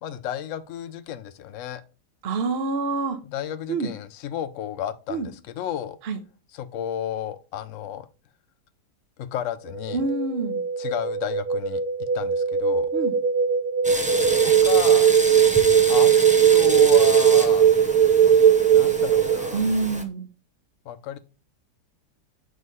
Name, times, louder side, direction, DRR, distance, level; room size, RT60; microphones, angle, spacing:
voice 1, 0.0-1.8 3.2-6.0 6.5-8.1 9.2-10.0 10.8-11.8 12.1-12.9 14.4-15.1 15.9-16.1 16.5-17.7 18.6-19.6 20.9-21.2, left 10 dB, 60° left, 0.8 m, -32 dB
voice 2, 2.2-3.2 3.7-3.9 5.1-5.3 6.0-6.2 9.9-10.6 12.9-13.1 19.5-20.3, right 3 dB, 45° right, 1.0 m, -26 dB
sound 1, 9.7-19.6, right 8 dB, 65° right, 1.0 m, -19 dB
sound 2, 13.8-20.0, right 1 dB, 10° right, 0.3 m, -31 dB
6.5 x 3.2 x 5.4 m
omnidirectional pair, 1.8 m